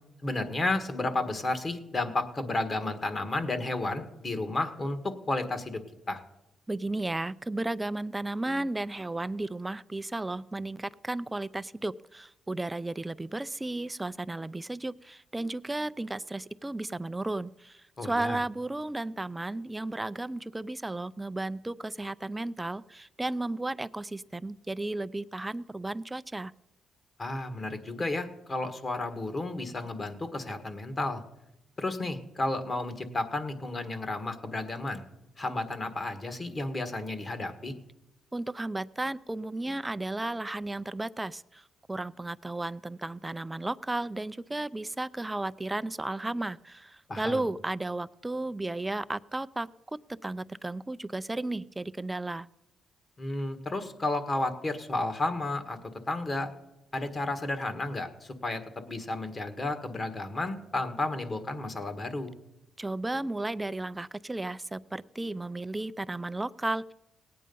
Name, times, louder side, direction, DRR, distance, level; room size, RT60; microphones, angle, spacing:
voice 1, 0.2-6.2 18.0-18.4 27.2-31.2 31.8-35.0 35.4-37.7 47.1-47.4 53.2-55.8 56.1-56.5 56.9-62.3, left 2 dB, 35° left, 8 dB, 1.5 m, -32 dB
voice 2, 6.7-26.5 38.3-52.5 62.8-66.9, right 2 dB, 15° right, 16 dB, 0.4 m, -34 dB
18.0 x 8.7 x 5.4 m, 0.92 s
cardioid pair, 90°, 0 cm